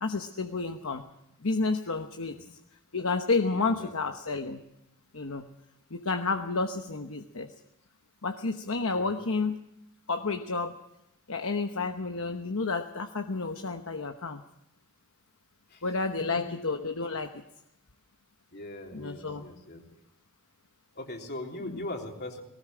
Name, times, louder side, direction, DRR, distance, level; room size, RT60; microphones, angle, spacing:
voice 1, 0.0-1.0 1.4-2.5 2.9-4.6 5.1-5.5 5.9-7.5 8.2-9.6 10.1-10.8 11.3-14.4 15.8-17.4 18.9-19.5 21.6-21.9, left 3 dB, 65° left, 6 dB, 1.1 m, -30 dB
voice 2, 3.5-3.9 9.0-9.1 15.7-15.8 18.5-19.8 21.0-22.4, left 1 dB, 50° left, 2 dB, 3.4 m, -40 dB
19.5 x 18.5 x 7.7 m, 0.81 s
head